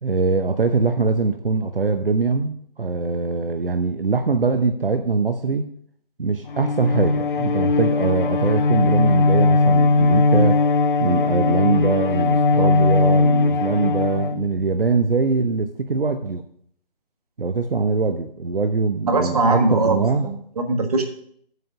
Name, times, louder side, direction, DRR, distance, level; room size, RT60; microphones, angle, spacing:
voice 1, 0.0-5.7 6.2-10.6 11.0-16.4 17.4-20.3, right 4 dB, 70° right, 7 dB, 0.8 m, -22 dB
Bowed string instrument, 6.5-14.9, left 3 dB, 60° left, 0.4 m, -19 dB
voice 2, 19.1-21.0, right 2 dB, 40° right, 5 dB, 1.3 m, -21 dB
7.9 x 5.1 x 5.9 m, 0.64 s
figure-of-eight pair, 145°, 29 cm